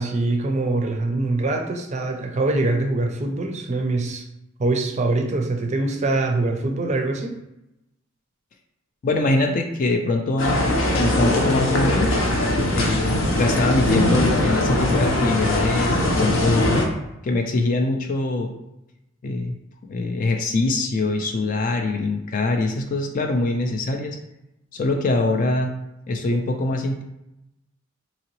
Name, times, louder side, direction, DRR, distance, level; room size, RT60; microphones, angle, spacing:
voice 1, 0.0-4.3 4.6-7.4, right 2 dB, 35° right, 4 dB, 0.5 m, -23 dB
voice 2, 9.0-12.1 12.7-16.8 17.2-18.5 19.2-19.5 19.9-24.2 24.7-25.8 26.1-27.0, left 2 dB, 40° left, 4 dB, 0.4 m, -23 dB
sound 1, 10.4-16.8, left 1 dB, 70° left, 0.8 m, -21 dB
3.9 x 2.9 x 3.0 m, 0.88 s
head